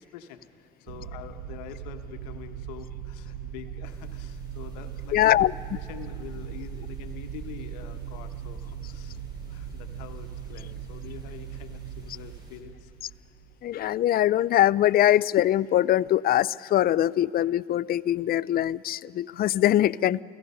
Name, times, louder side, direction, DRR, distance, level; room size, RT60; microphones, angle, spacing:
voice 1, 0.0-5.5 5.7-9.2 9.5-12.9, left 10 dB, 90° left, 1.2 m, -45 dB
sound 1, 0.9-13.9, right 8 dB, 80° right, 1.1 m, -39 dB
sound 2, 3.8-12.6, right 1 dB, 20° right, 4.9 m, -56 dB
voice 2, 5.1-5.5 13.6-20.2, left 13 dB, 45° left, 0.4 m, -22 dB
29.0 x 16.5 x 5.6 m
supercardioid pair, 75°, 21 cm